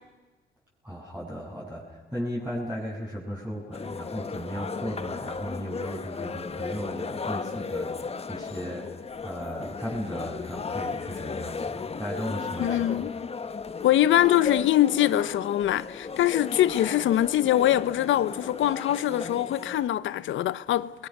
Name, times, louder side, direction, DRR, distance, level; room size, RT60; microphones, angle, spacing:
voice 1, 0.8-7.9 8.3-8.9 9.2-13.1, equal, 10° right, 7.6 m, -36 dB
sound 1, 3.7-19.9, left 4 dB, 30° left, 1.2 m, -35 dB
voice 2, 12.6-13.1 13.8-21.1, left 13 dB, 75° left, 0.9 m, -23 dB
29.5 x 22.5 x 6.8 m
cardioid pair, 90°, 20 cm